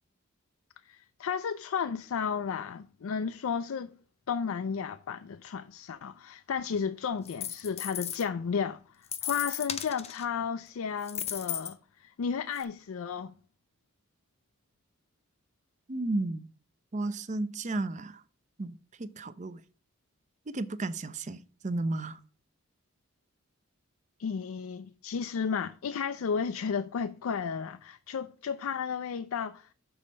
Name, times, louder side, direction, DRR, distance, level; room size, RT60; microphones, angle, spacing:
voice 1, 0.8-3.9 4.3-13.3 24.2-29.7, left 6 dB, 70° left, 0.4 m, -33 dB
sound 1, 7.2-8.2 9.1-10.2 11.0-11.7 12.6-12.7, left 9 dB, 30° left, 0.6 m, -36 dB
voice 2, 15.9-16.5 16.9-18.2 18.6-19.6 20.5-22.2, right 2 dB, 35° right, 0.5 m, -33 dB
6.9 x 4.3 x 6.2 m
head